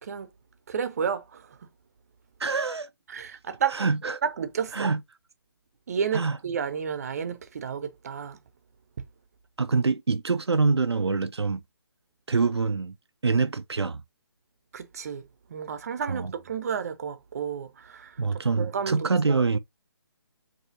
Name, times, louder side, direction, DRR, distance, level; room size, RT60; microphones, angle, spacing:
voice 1, 0.7-1.7 3.1-3.9 4.2-4.9 5.9-8.4 9.0-9.1 14.7-19.4, right 7 dB, 40° right, 0.6 m, -32 dB
voice 2, 2.4-2.9 3.8-4.2 4.7-5.0 6.1-6.4 9.6-11.6 12.3-13.0 13.2-14.0 16.1-16.3 18.2-19.6, right 4 dB, 85° right, 0.4 m, -25 dB
5.5 x 2.7 x 2.7 m
figure-of-eight pair, 145°, 13 cm